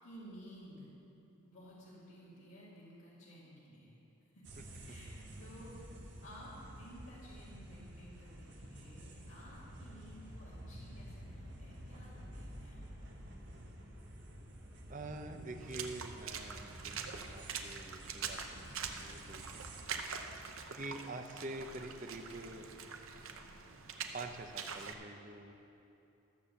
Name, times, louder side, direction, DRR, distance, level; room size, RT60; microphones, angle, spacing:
voice 1, 0.0-0.9 1.4-3.9 4.3-4.4 4.9-13.1, equal, 70° left, -8 dB, 2.4 m, -55 dB
sound 1, 4.4-19.8, equal, 55° right, 1.5 m, -51 dB
voice 2, 14.9-19.6 20.7-22.7 24.1-25.5, right 2 dB, 35° right, 5 dB, 0.7 m, -46 dB
Water / Splash splatter, 15.6-24.9, right 6 dB, 75° right, 0.8 m, -44 dB
13.0 x 6.9 x 6.9 m, 2.9 s
head